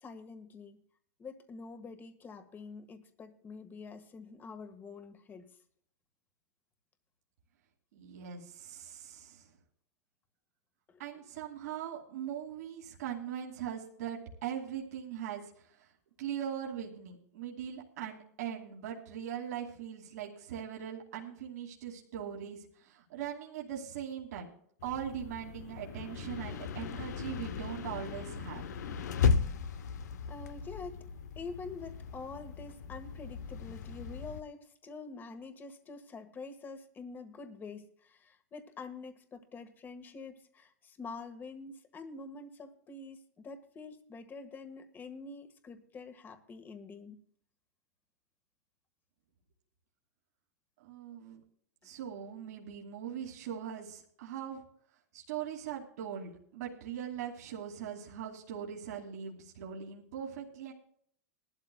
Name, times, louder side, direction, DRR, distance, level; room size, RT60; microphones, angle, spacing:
voice 1, 0.0-0.8 1.2-5.5 10.9-11.0 30.3-31.1 31.4-47.2, left 4 dB, 20° left, 8 dB, 1.6 m, -46 dB
voice 2, 7.9-9.5 11.0-15.9 16.2-24.5 24.8-28.6 50.8-51.4 51.8-54.6 55.1-60.7, right 9 dB, 70° right, -1 dB, 2.5 m, -41 dB
sound 1, 24.8-34.4, left 6 dB, 85° left, 1.0 m, -36 dB
19.5 x 12.5 x 2.3 m, 0.64 s
hypercardioid pair, 130°, 9 cm